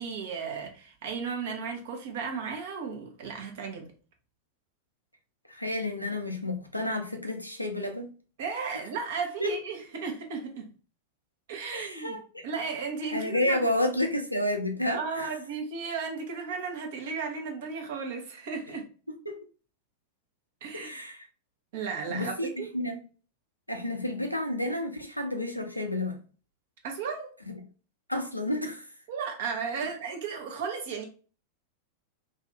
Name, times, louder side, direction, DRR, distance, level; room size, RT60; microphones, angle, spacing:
voice 1, 0.0-3.8 8.4-10.7 11.5-12.2 12.4-13.7 14.9-18.8 20.6-20.9 21.7-22.7 26.8-27.3 29.1-31.0, right 5 dB, 55° right, 0.8 m, -34 dB
voice 2, 5.5-8.1 9.4-9.5 11.7-12.2 13.1-15.3 19.3-19.4 20.7-21.3 22.1-22.5 22.7-23.0 23.7-26.2 28.1-28.9, left 1 dB, 90° left, 0.6 m, -30 dB
2.7 x 2.5 x 3.4 m
figure-of-eight pair, 90°, 0 cm